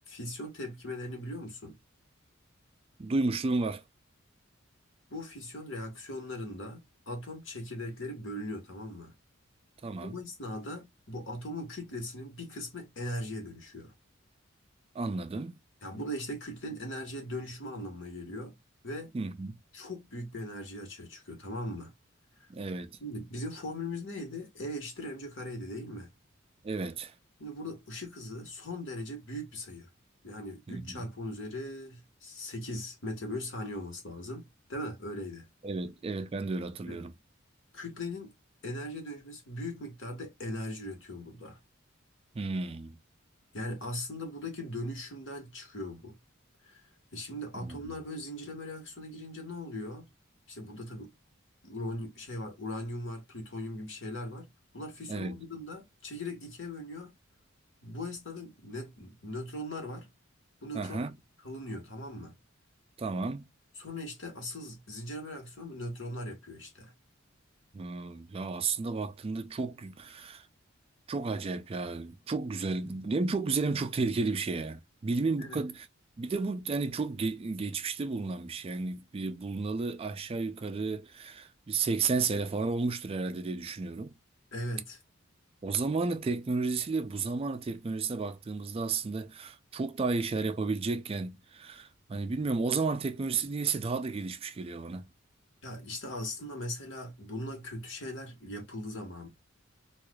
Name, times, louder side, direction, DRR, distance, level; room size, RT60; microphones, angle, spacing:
voice 1, 0.1-1.8 5.1-9.2 10.0-13.9 15.8-18.6 18.8-19.1 19.7-21.9 22.4-22.5 23.0-26.1 27.4-29.9 30.2-35.4 36.8-37.0 37.7-38.3 38.6-41.6 43.5-46.2 46.6-46.8 47.1-50.1 50.5-51.1 51.6-57.2 57.8-60.1 60.6-61.0 61.4-62.4 63.8-66.9 75.4-75.6 84.5-85.0 95.6-99.3, left 1 dB, 65° left, 1.4 m, -39 dB
voice 2, 3.0-3.8 9.8-10.2 14.9-15.6 19.1-19.6 22.5-23.0 26.6-27.1 30.7-31.0 35.6-37.1 42.3-43.0 47.5-47.8 55.1-55.4 60.7-61.2 63.0-63.5 67.7-70.5 71.1-75.9 76.2-84.1 85.6-95.1, right 4 dB, 30° right, 0.3 m, -32 dB
4.5 x 2.5 x 2.3 m
head